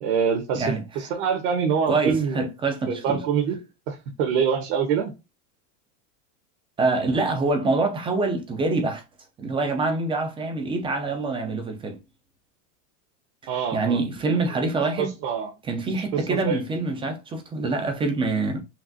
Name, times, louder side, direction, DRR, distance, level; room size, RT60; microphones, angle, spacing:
voice 1, 0.0-0.6 0.9-2.5 2.9-3.6 3.9-5.1 13.5-14.0 15.0-15.5 16.1-16.6, right 7 dB, 60° right, 1.1 m, -25 dB
voice 2, 1.9-3.2 6.8-9.0 9.4-12.0 13.7-15.1 15.7-18.6, right 3 dB, 15° right, 0.4 m, -25 dB
5.8 x 2.4 x 2.6 m
supercardioid pair, 150°, 39 cm